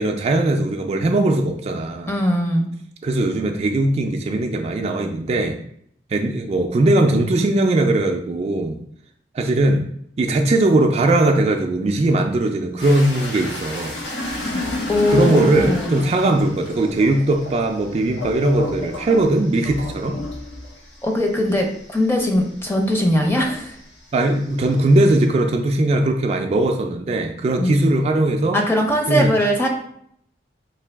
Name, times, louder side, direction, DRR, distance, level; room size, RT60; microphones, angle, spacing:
voice 1, 0.0-2.1 3.0-5.6 6.1-8.8 9.3-9.9 10.2-14.0 15.1-20.2 24.1-28.6 29.1-29.3, right 2 dB, 35° right, 3 dB, 0.3 m, -19 dB
voice 2, 2.1-2.7 14.9-16.0 21.0-23.8 27.6-27.7 28.5-29.7, left 1 dB, 15° left, 1 dB, 0.6 m, -20 dB
sound 1, 12.8-23.7 24.1-25.2, left 2 dB, 85° left, 1.0 m, -31 dB
3.7 x 2.7 x 3.4 m, 0.69 s
head